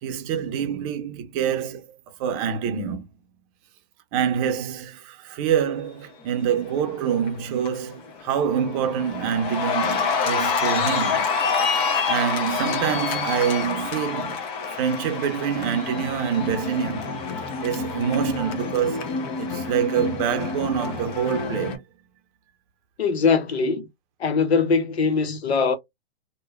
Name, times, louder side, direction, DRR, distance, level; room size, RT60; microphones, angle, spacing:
voice 1, 0.0-1.8 2.2-3.0 4.1-11.3 12.1-14.4 14.7-17.1 17.6-21.8, right 8 dB, 35° right, 0.6 m, -26 dB
Cheering, 6.9-7.3 7.7-21.8, left 5 dB, 20° left, 0.3 m, -27 dB
voice 2, 23.0-23.9 24.2-25.8, left 5 dB, 85° left, 0.8 m, -21 dB
2.9 x 2.2 x 2.2 m
hypercardioid pair, 125°, 31 cm